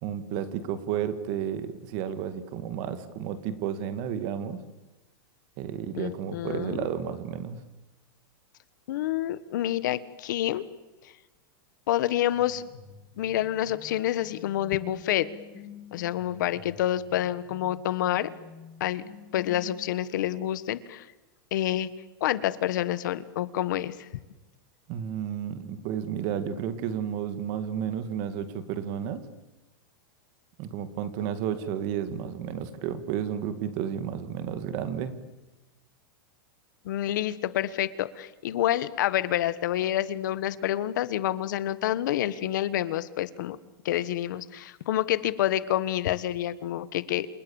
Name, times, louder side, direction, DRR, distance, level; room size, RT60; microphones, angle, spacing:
voice 1, 0.0-4.6 5.6-7.6 24.9-29.2 30.6-35.2, right 9 dB, 35° right, 12 dB, 2.1 m, -32 dB
voice 2, 5.9-6.8 8.9-10.7 11.9-12.6 13.2-15.3 15.9-18.3 18.8-19.0 19.3-21.1 21.5-21.9 22.2-24.1 36.8-43.6 43.8-47.3, left 13 dB, 55° left, 16 dB, 1.5 m, -28 dB
sound 1, 12.3-19.9, left 6 dB, 15° left, 4.5 m, -49 dB
29.0 x 27.5 x 7.2 m, 1.1 s
supercardioid pair, 175°, 12 cm